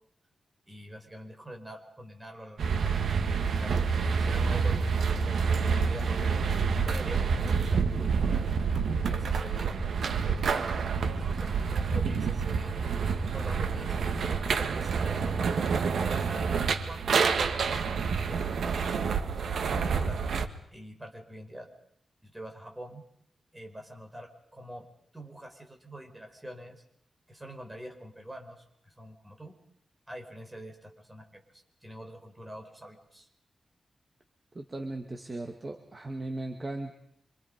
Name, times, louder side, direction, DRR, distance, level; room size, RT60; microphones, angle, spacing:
voice 1, 0.7-2.9 3.4-5.4 5.7-6.4 6.8-8.5 9.0-10.7 11.1-12.9 13.2-14.0 14.3-15.7 16.0-17.6 18.1-20.2 20.7-21.7 22.2-23.0 23.5-24.9 25.1-26.8 27.3-29.6 30.1-33.3, right 1 dB, 10° right, 3 dB, 4.9 m, -45 dB
sound 1, 2.6-20.5, right 5 dB, 90° right, 1.8 m, -28 dB
voice 2, 34.6-36.9, right 2 dB, 30° right, 3 dB, 2.1 m, -37 dB
27.5 x 26.0 x 5.3 m, 0.70 s
wide cardioid pair, 130°, 0 cm